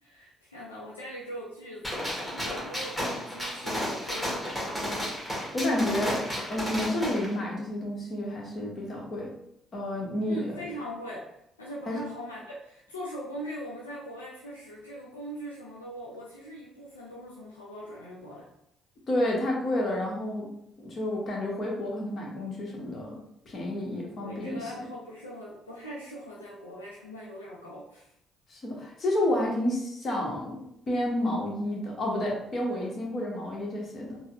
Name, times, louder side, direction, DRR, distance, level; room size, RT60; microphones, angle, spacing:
voice 1, 0.0-5.1 10.3-18.5 24.2-28.1, equal, 90° left, -5 dB, 0.4 m, -41 dB
Gunshot gunfire, 1.8-7.3, equal, 5° left, 1.3 m, -33 dB
voice 2, 5.5-9.3 9.7-10.5 11.9-12.0 19.1-20.5 20.8-23.2 23.5-24.6 28.5-34.2, left 1 dB, 45° left, -2 dB, 1.0 m, -30 dB
4.0 x 2.0 x 2.5 m, 0.77 s
figure-of-eight pair, 45°, 0 cm